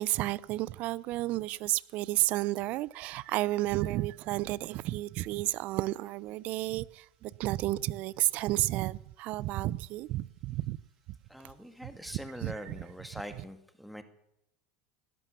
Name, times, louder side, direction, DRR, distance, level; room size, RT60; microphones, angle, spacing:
voice 1, 0.0-10.8 11.8-12.8 13.1-13.4, right 17 dB, 50° right, 0.6 m, -32 dB
voice 2, 11.3-14.0, equal, ahead, 2.0 m, -43 dB
18.0 x 11.5 x 6.9 m
supercardioid pair, 115°, 3 cm